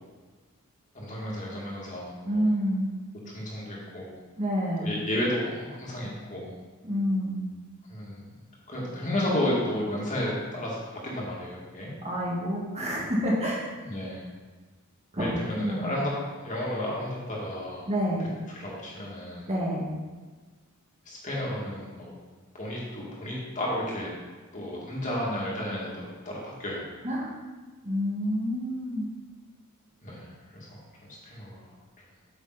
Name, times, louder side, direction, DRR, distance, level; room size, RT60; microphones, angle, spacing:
voice 1, 0.9-2.5 3.3-4.2 4.8-6.5 7.9-8.3 8.7-11.9 13.8-14.2 15.2-16.2 16.4-17.9 18.5-19.5 21.1-22.1 22.5-24.1 24.5-26.9 30.0-30.8 31.2-31.6, left 1 dB, 35° left, -5 dB, 2.4 m, -32 dB
voice 2, 2.2-2.9 4.4-4.9 6.8-7.4 12.0-13.7 15.1-15.9 17.8-18.3 19.5-19.9 27.0-27.3 27.8-29.1, equal, 30° right, -4 dB, 2.0 m, -28 dB
8.9 x 6.6 x 4.2 m, 1.4 s
head